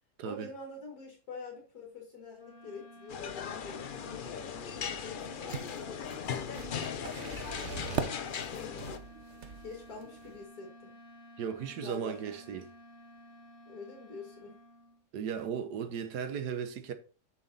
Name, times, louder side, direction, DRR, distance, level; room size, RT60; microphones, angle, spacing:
voice 1, 0.2-7.0 7.9-9.0 9.6-10.9 11.7-12.6 13.7-14.6, left 4 dB, 65° left, 2.3 m, -47 dB
sound 1, 2.3-15.1, left 1 dB, 40° left, 1.9 m, -53 dB
sound 2, 3.1-9.0, left 7 dB, 85° left, 0.4 m, -38 dB
sound 3, 5.4-10.4, right 6 dB, 55° right, 0.9 m, -41 dB
voice 2, 11.4-12.7 15.1-16.9, right 7 dB, 80° right, 1.5 m, -36 dB
7.0 x 6.2 x 4.1 m
omnidirectional pair, 1.7 m